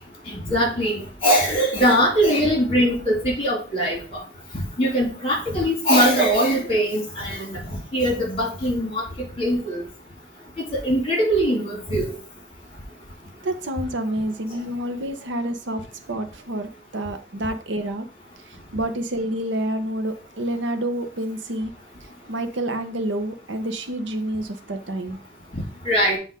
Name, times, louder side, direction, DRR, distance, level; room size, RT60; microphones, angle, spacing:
voice 1, 0.5-0.9 1.2-4.0 4.5-7.6 7.9-9.0 9.4-9.8 10.7-12.1 25.9-26.2, equal, 30° left, -1 dB, 2.2 m, -21 dB
voice 2, 13.4-15.8 16.1-18.1 18.5-21.7 22.3-25.2, right 1 dB, 75° right, 8 dB, 0.8 m, -28 dB
7.6 x 2.6 x 4.9 m, 0.36 s
head